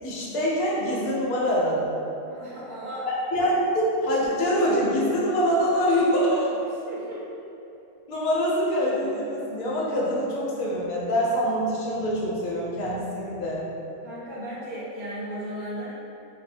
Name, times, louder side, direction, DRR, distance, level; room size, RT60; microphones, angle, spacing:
voice 1, 0.0-1.9 3.1-6.5 8.1-13.6, equal, 70° left, -6 dB, 1.1 m, -24 dB
voice 2, 2.3-3.1 6.9-7.2 14.0-15.9, right 1 dB, 70° right, -7 dB, 1.1 m, -35 dB
4.2 x 2.0 x 2.6 m, 2.8 s
omnidirectional pair, 1.7 m